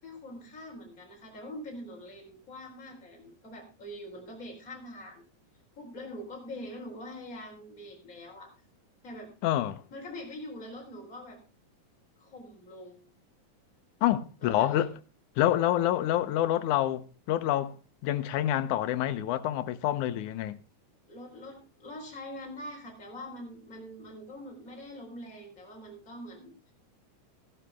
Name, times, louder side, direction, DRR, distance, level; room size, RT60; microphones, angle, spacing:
voice 1, 0.0-5.2 5.8-8.5 9.0-9.3 9.9-11.4 12.2-13.0 14.4-14.9 21.1-26.7, left 1 dB, 25° left, 4.2 m, -44 dB
voice 2, 9.4-9.8 14.0-14.9 15.4-17.8 18.0-20.6, left 12 dB, 80° left, 2.3 m, -27 dB
13.5 x 12.0 x 3.5 m
omnidirectional pair, 3.5 m